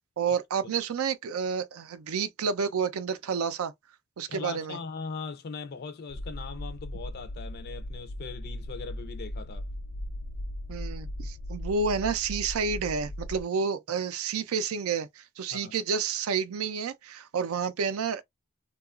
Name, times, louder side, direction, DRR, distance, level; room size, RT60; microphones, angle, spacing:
voice 1, 0.2-3.7 4.2-4.8 10.7-18.2, right 5 dB, 75° right, 0.4 m, -30 dB
voice 2, 4.3-9.7 15.5-15.8, left 4 dB, 45° left, 0.4 m, -40 dB
sound 1, 6.1-13.4, left 1 dB, 85° left, 0.8 m, -38 dB
2.8 x 2.3 x 2.4 m
head